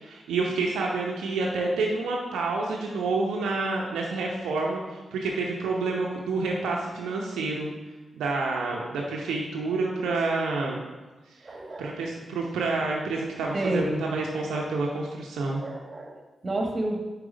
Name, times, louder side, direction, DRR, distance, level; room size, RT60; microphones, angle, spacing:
voice 1, 0.0-7.7 8.1-10.8 11.8-15.6, right 3 dB, 90° right, -1 dB, 0.7 m, -28 dB
voice 2, 11.4-12.0 13.5-14.0 15.6-17.0, right 1 dB, 45° right, 2 dB, 1.2 m, -30 dB
4.8 x 4.8 x 5.1 m, 1.2 s
supercardioid pair, 45°, 0 cm